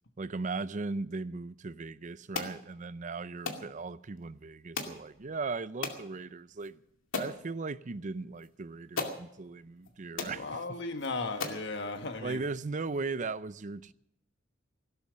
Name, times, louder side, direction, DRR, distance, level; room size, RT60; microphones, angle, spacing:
voice 1, 0.2-6.8 7.1-10.8 12.2-13.9, right 3 dB, 40° right, 0.5 m, -38 dB
sound 1, 2.3-2.6 3.5-3.7 4.8-5.0 5.8-6.0 6.6-6.7 7.1-7.4 8.4-8.5 9.0-9.2 9.8-9.9 10.2-10.4 11.0-11.1 11.4-11.7, left 4 dB, 80° left, 2.3 m, -35 dB
voice 2, 10.2-12.4, left 3 dB, 60° left, 1.5 m, -36 dB
17.0 x 12.5 x 6.3 m
head